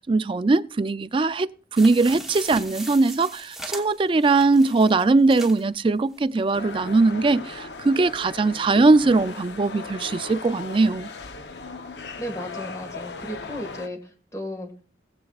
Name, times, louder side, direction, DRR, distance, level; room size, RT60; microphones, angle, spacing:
voice 1, 0.1-11.1, right 3 dB, 30° right, 0.4 m, -20 dB
sound 1, 1.8-5.7 6.2-6.3 6.5-6.6, right 1 dB, 5° right, 1.1 m, -38 dB
sound 2, 6.5-13.9, left 4 dB, 70° left, 0.8 m, -38 dB
voice 2, 12.2-14.7, equal, 20° left, 1.7 m, -34 dB
19.5 x 7.7 x 2.4 m
head